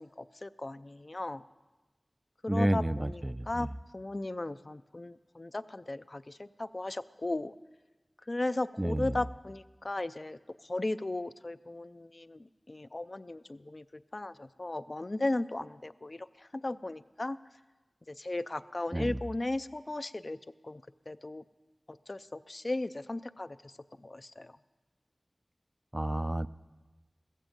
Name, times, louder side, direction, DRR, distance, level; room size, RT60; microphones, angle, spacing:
voice 1, 0.0-1.4 2.4-3.7 3.9-7.5 8.3-10.4 10.7-13.8 14.1-17.4 18.1-20.4 20.6-21.4 21.9-23.7 24.0-24.6, left 2 dB, 50° left, 13 dB, 0.4 m, -36 dB
voice 2, 2.5-3.7 8.8-9.2 18.9-19.2 25.9-26.5, right 1 dB, 20° right, 14 dB, 0.4 m, -30 dB
15.0 x 15.0 x 5.2 m, 1.2 s
wide cardioid pair, 45°, 0 cm